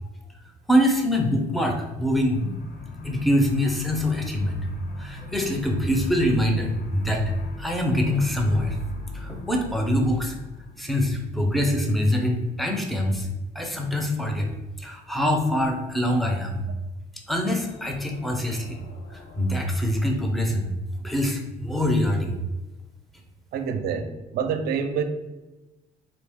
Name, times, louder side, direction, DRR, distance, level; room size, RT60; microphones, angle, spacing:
voice 1, 0.7-2.5 3.0-4.7 5.0-7.2 7.6-8.8 9.1-10.4 10.8-13.3 13.5-14.5 14.8-16.7 17.3-18.8 19.1-20.7 21.0-22.4, left 1 dB, ahead, 2 dB, 0.6 m, -24 dB
sound 1, 2.0-11.9 17.5-19.5, left 3 dB, 50° left, 0.8 m, -40 dB
voice 2, 23.5-25.0, right 6 dB, 65° right, 8 dB, 0.5 m, -27 dB
4.2 x 2.3 x 3.5 m, 1.1 s
cardioid pair, 110°, 17 cm